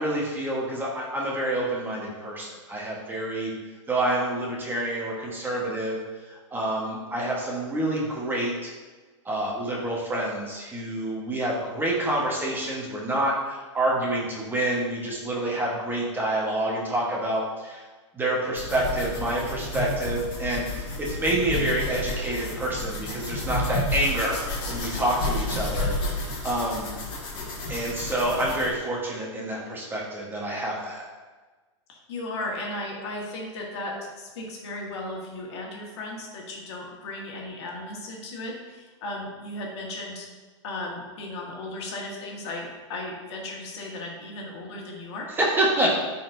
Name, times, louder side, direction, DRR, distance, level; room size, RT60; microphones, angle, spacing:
voice 1, 0.0-3.5 3.9-6.0 6.3-8.7 9.2-17.8 18.1-24.4 24.7-26.9 27.7-31.1 45.4-45.9, right 1 dB, 15° right, -4 dB, 1.4 m, -27 dB
sound 1, 18.5-28.7, left 2 dB, 35° left, 1.9 m, -31 dB
voice 2, 31.9-40.3 40.6-45.3, left 2 dB, 60° left, -1 dB, 1.7 m, -36 dB
10.0 x 4.3 x 2.7 m, 1.3 s
hypercardioid pair, 125°, 16 cm